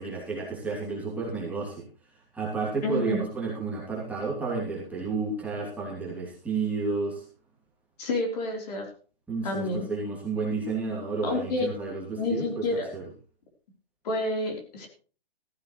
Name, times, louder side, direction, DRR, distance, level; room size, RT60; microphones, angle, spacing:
voice 1, 0.0-1.8 2.3-7.2 9.3-12.7 12.9-13.0, right 4 dB, 5° right, -5 dB, 2.8 m, -31 dB
voice 2, 2.8-3.2 8.0-8.9 9.4-9.9 11.2-11.7 12.2-12.9 14.0-14.9, left 2 dB, 40° left, 2 dB, 3.9 m, -29 dB
15.0 x 14.5 x 3.2 m, 0.40 s
hypercardioid pair, 160°, 29 cm